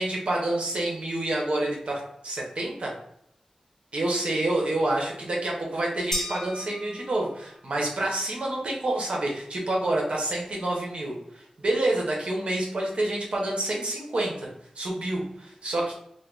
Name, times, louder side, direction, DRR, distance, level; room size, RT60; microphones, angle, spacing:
voice 1, 0.0-3.0 3.9-14.5 14.7-15.9, right 1 dB, 60° right, -2 dB, 0.9 m, -28 dB
sound 1, 6.1-7.6, left 1 dB, 20° left, 1.0 m, -34 dB
2.7 x 2.2 x 3.5 m, 0.75 s
cardioid pair, 55°, 2 cm